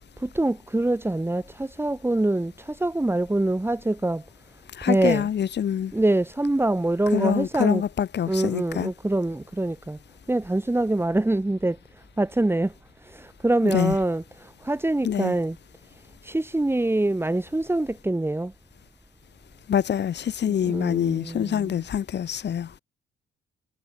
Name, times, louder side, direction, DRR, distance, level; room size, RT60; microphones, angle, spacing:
voice 1, 0.2-4.2 4.8-5.3 5.9-7.8 8.3-10.0 10.3-12.7 13.0-15.6 16.2-18.5 20.5-21.8, right 2 dB, 10° right, 5.6 m, -25 dB
voice 2, 4.8-5.9 7.1-8.9 13.7-14.0 15.0-15.3 19.7-22.7, left 9 dB, 60° left, 6.9 m, -25 dB
cardioid pair, 90°, 20 cm